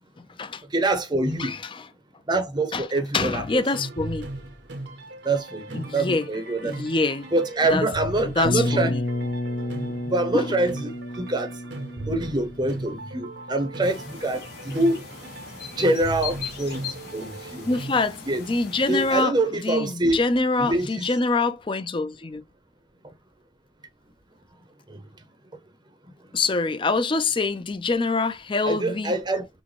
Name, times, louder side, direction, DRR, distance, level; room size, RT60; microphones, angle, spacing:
voice 1, 0.2-0.6 1.4-1.9 2.7-2.9 3.1-4.3 5.7-6.3 6.6-7.3 7.7-7.9 8.4-9.0 10.3-10.5 17.7-22.4 26.3-29.1, left 3 dB, 25° left, 0.5 m, -25 dB
voice 2, 0.7-1.6 2.3-3.4 5.2-6.8 7.3-8.9 10.1-10.9 11.2-11.5 12.1-15.0 15.8-16.8 17.1-17.7 18.3-18.4 18.9-20.2 20.6-21.0 24.9-25.0 28.7-29.5, right 2 dB, 25° right, 0.7 m, -25 dB
sound 1, 3.5-18.0, right 2 dB, 70° right, 0.9 m, -38 dB
sound 2, 8.4-14.2, left 1 dB, 85° left, 0.8 m, -31 dB
sound 3, 13.8-19.2, left 6 dB, 60° left, 1.6 m, -39 dB
6.2 x 2.2 x 3.2 m
head